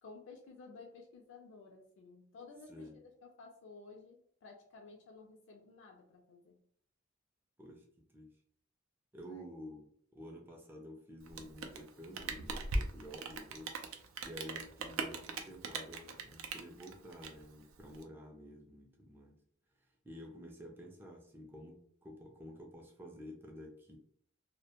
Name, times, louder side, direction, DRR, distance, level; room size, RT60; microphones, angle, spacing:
voice 1, 0.0-6.6 9.2-9.5, left 4 dB, 60° left, 0 dB, 0.4 m, -54 dB
voice 2, 9.1-13.7 14.2-19.4 20.0-24.0, equal, 10° right, 0 dB, 0.3 m, -50 dB
Rain, 11.2-18.0, right 3 dB, 85° right, 0.4 m, -40 dB
2.1 x 2.1 x 2.8 m, 0.63 s
head